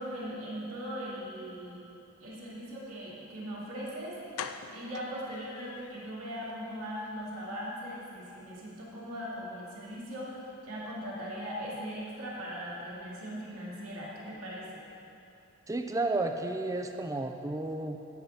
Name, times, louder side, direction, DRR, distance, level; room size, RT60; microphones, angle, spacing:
voice 1, 0.0-1.9 2.2-14.8, equal, 80° right, -6 dB, 2.4 m, -39 dB
sound 1, 3.7-3.8 4.3-6.1 6.5-6.6 7.0-7.1 7.4-7.5, left 7 dB, 70° left, 0.4 m, -43 dB
voice 2, 15.7-18.0, right 2 dB, 15° right, 6 dB, 0.4 m, -32 dB
8.3 x 5.6 x 7.8 m, 2.8 s
head